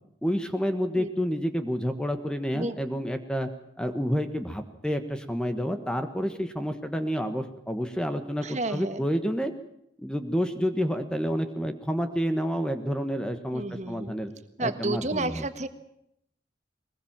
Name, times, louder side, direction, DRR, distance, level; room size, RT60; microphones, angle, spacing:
voice 1, 0.2-3.5 3.8-9.5 10.0-14.3 14.6-15.4, equal, 5° left, 7 dB, 1.4 m, -29 dB
voice 2, 8.4-9.1 13.5-14.1 14.6-15.7, right 2 dB, 40° right, 10 dB, 1.5 m, -31 dB
22.0 x 20.5 x 7.4 m, 0.76 s
head